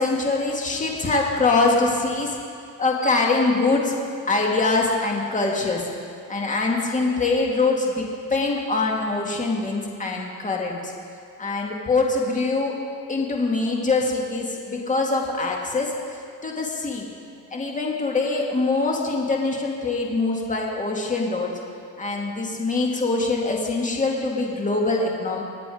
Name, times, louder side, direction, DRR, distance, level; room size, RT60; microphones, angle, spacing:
voice 1, 0.0-2.4 2.8-3.9 4.3-5.9 6.3-10.9 11.4-12.7 13.1-15.9 16.4-17.1 17.5-21.5 22.0-25.4, left 3 dB, 20° left, 0 dB, 2.1 m, -23 dB
22.5 x 8.9 x 5.0 m, 2.4 s
cardioid pair, 135°, 41 cm